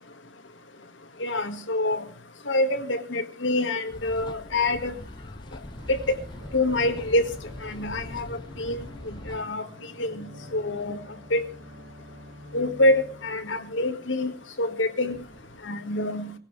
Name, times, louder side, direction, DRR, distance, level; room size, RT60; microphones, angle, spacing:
voice 1, 1.2-2.0 2.5-4.9 5.9-6.2 6.5-7.2 7.6-9.7 10.0-11.0 11.3-11.4 12.5-14.3 14.6-15.2 15.6-16.3, left 2 dB, 75° left, 8 dB, 1.9 m, -26 dB
sound 1, 3.9-9.4, left 1 dB, 25° left, 0.8 m, -42 dB
sound 2, 5.8-15.6, left 1 dB, 65° right, 3.6 m, -47 dB
19.0 x 16.5 x 3.3 m, 0.33 s
head